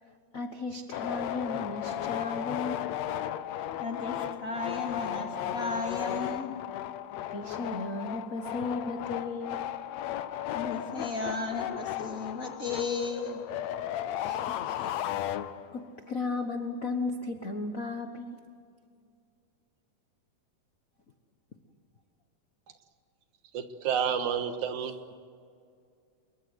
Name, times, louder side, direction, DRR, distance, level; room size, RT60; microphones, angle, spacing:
voice 1, 0.0-3.0 7.3-9.7 14.2-14.9 15.7-18.4, left 3 dB, 45° left, 6 dB, 1.1 m, -35 dB
sound 1, 0.9-15.9, left 11 dB, 75° left, 2.0 m, -35 dB
voice 2, 3.8-6.5 10.5-13.4 14.8-15.1, left 4 dB, 25° left, 1 dB, 3.1 m, -35 dB
voice 3, 23.5-25.0, right 7 dB, 90° right, 8 dB, 2.9 m, -30 dB
26.5 x 23.0 x 8.1 m, 2.2 s
omnidirectional pair, 3.3 m